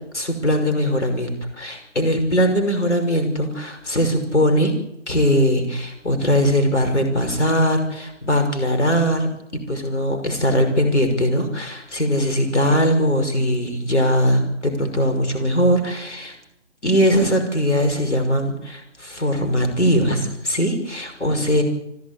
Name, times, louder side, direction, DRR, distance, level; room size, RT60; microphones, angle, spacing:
voice 1, 0.1-4.8 5.1-9.3 9.7-16.3 16.8-21.6, equal, 70° left, 6 dB, 5.8 m, -20 dB
30.0 x 11.5 x 8.7 m, 0.78 s
figure-of-eight pair, 145°, 36 cm